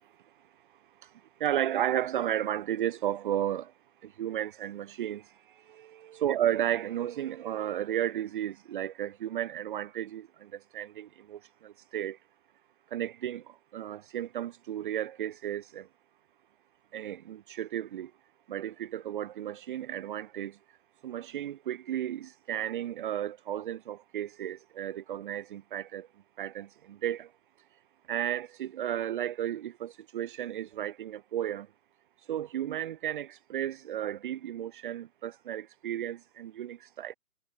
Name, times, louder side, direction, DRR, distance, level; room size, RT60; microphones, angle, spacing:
voice 1, 1.4-3.7 4.0-5.2 5.7-12.2 12.9-13.4 13.7-15.9 16.9-18.1 18.5-20.6 21.0-26.1 26.4-27.3 28.1-31.7 32.3-37.1, right 11 dB, 35° right, 0.9 m, -33 dB
figure-of-eight pair, 135°, 47 cm